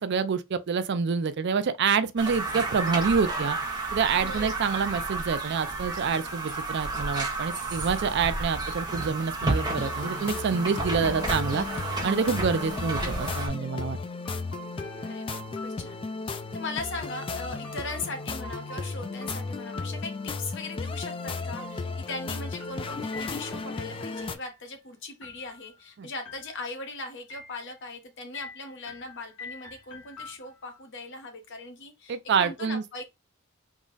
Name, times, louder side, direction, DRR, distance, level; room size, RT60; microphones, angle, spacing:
voice 1, 0.0-3.6 3.9-11.7 12.0-14.0 26.0-26.1 32.1-33.0, right 5 dB, 55° right, 0.4 m, -27 dB
sound 1, 2.2-13.5, right 3 dB, 20° right, 1.0 m, -32 dB
voice 2, 4.2-4.8 11.0-11.6 12.3-12.5 15.0-33.0, left 3 dB, 60° left, 1.0 m, -39 dB
sound 2, 9.6-24.4, left 3 dB, 25° left, 0.3 m, -35 dB
sound 3, 13.7-16.5 17.6-20.6 21.6-23.7 24.2-24.8 25.2-25.9 26.2-26.9 27.3-27.9 28.3-30.8, left 2 dB, 85° left, 1.2 m, -46 dB
3.6 x 2.1 x 3.9 m
head